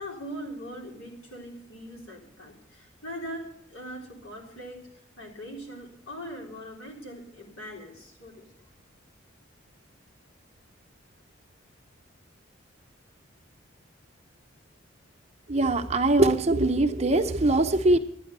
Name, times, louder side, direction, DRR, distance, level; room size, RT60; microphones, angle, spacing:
voice 1, 0.0-4.8 5.2-8.5, equal, 90° left, 0 dB, 3.7 m, -41 dB
voice 2, 15.5-18.0, right 2 dB, 30° right, 6 dB, 0.8 m, -22 dB
12.0 x 9.9 x 6.7 m, 0.71 s
head